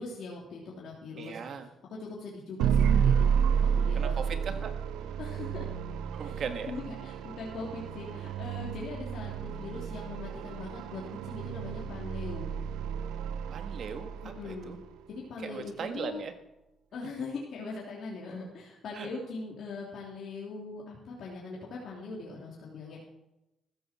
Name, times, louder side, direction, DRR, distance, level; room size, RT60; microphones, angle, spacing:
voice 1, 0.0-1.4 1.9-4.7 5.2-5.7 6.2-6.3 6.7-12.5 14.2-14.8 15.1-16.2 16.9-23.0, left 3 dB, 65° left, -4 dB, 3.1 m, -41 dB
voice 2, 1.2-1.7 3.9-4.7 6.1-6.7 13.5-14.8 15.4-16.3 18.9-19.1, right 6 dB, 60° right, 7 dB, 1.8 m, -38 dB
sound 1, 2.6-14.8, right 7 dB, 90° right, 0.7 m, -31 dB
14.5 x 14.0 x 4.4 m, 0.93 s
cardioid pair, 90°, 0 cm